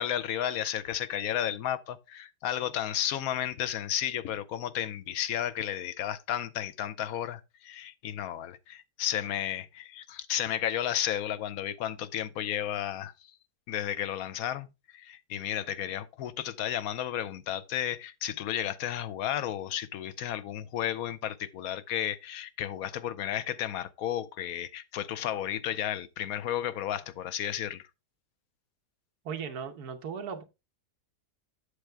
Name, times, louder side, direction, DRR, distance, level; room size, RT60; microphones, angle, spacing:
voice 1, 0.0-13.1 13.7-14.7 14.9-27.8, left 11 dB, 70° left, 1.0 m, -33 dB
voice 2, 29.2-30.4, right 6 dB, 70° right, 1.5 m, -37 dB
8.2 x 6.4 x 3.3 m
omnidirectional pair, 1.7 m